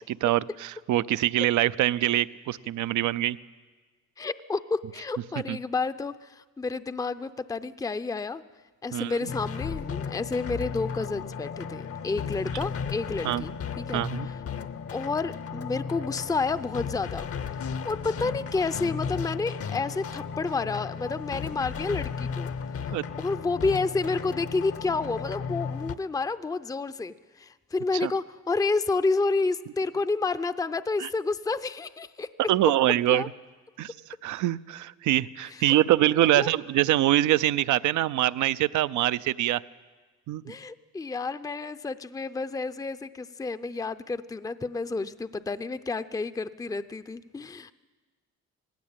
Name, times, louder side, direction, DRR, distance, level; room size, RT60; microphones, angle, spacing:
voice 1, 0.1-3.4 5.5-5.6 8.9-9.1 13.2-13.4 13.9-14.3 22.9-23.0 28.0-28.1 31.0-31.1 32.5-33.2 33.8-33.9 34.2-39.6 40.3-40.4, right 14 dB, 75° right, 16 dB, 0.6 m, -24 dB
voice 2, 4.2-8.4 8.8-14.4 14.9-17.3 17.8-22.5 23.2-32.3 33.1-33.3 35.5-35.7 36.2-36.5 40.5-47.7, left 3 dB, 10° left, 13 dB, 0.5 m, -30 dB
sound 1, 9.3-25.9, left 6 dB, 50° left, 0.8 m, -35 dB
19.0 x 16.5 x 8.7 m, 1.3 s
cardioid pair, 90°, 30 cm